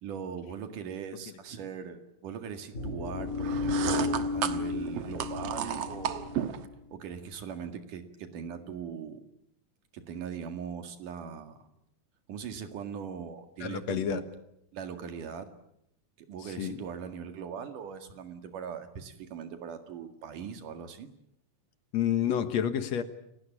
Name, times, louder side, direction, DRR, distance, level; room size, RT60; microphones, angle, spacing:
voice 1, 0.0-6.4 6.9-9.2 9.9-11.7 12.3-14.2 14.7-15.5 16.2-21.1, right 7 dB, 90° right, 8 dB, 3.6 m, -40 dB
sound 1, 2.7-6.9, left 3 dB, 25° left, 2.3 m, -33 dB
sound 2, 3.4-6.7, right 10 dB, 60° right, 2.1 m, -33 dB
voice 2, 13.6-14.2 16.4-16.8 21.9-23.0, left 9 dB, 65° left, 10 dB, 2.4 m, -29 dB
29.0 x 18.5 x 8.6 m, 0.79 s
omnidirectional pair, 3.6 m